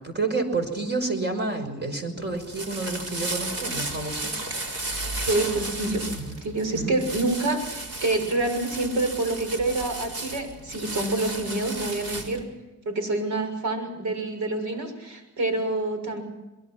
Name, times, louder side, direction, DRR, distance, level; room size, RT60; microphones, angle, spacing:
voice 1, 0.0-4.4 6.1-6.4 6.7-6.9, right 3 dB, 35° right, 7 dB, 5.8 m, -29 dB
sound 1, 2.2-12.4, right 2 dB, 50° right, 4.4 m, -34 dB
voice 2, 5.0-6.1 6.4-12.5 12.8-16.2, right 2 dB, 70° right, 7 dB, 6.5 m, -27 dB
24.5 x 22.0 x 6.1 m, 1.1 s
cardioid pair, 90°, 30 cm